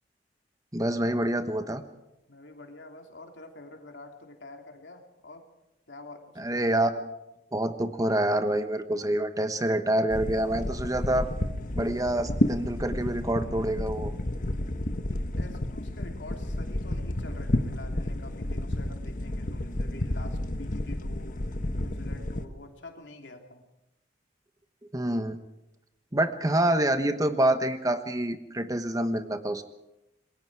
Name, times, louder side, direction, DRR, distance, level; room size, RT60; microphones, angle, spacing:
voice 1, 0.7-1.8 6.4-7.0 7.5-11.3 11.7-14.1 24.9-25.4 26.1-29.6, right 1 dB, 20° right, 9 dB, 1.2 m, -27 dB
voice 2, 2.3-5.4 5.9-6.4 15.1-21.4 21.7-23.6, left 2 dB, 85° left, 3 dB, 3.0 m, -47 dB
sound 1, 10.1-22.5, left 1 dB, 50° left, 1.2 m, -31 dB
27.0 x 21.0 x 4.8 m, 0.90 s
head